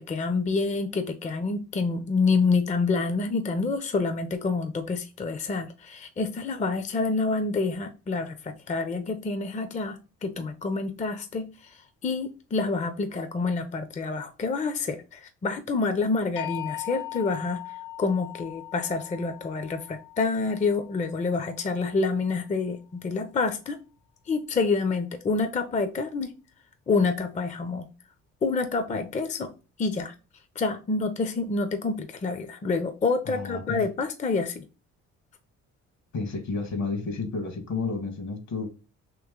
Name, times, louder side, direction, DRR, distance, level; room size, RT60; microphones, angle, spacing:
voice 1, 0.0-17.6 18.0-23.8 24.3-26.3 26.9-27.9 28.4-29.5 29.8-30.1 30.6-34.6, left 4 dB, 25° left, 0.5 m, -27 dB
sound 1, 16.4-22.3, left 14 dB, 85° left, 0.7 m, -40 dB
voice 2, 33.2-33.8 36.1-38.7, left 4 dB, 65° left, 1.2 m, -31 dB
3.0 x 2.9 x 3.6 m
cardioid pair, 90°, 30 cm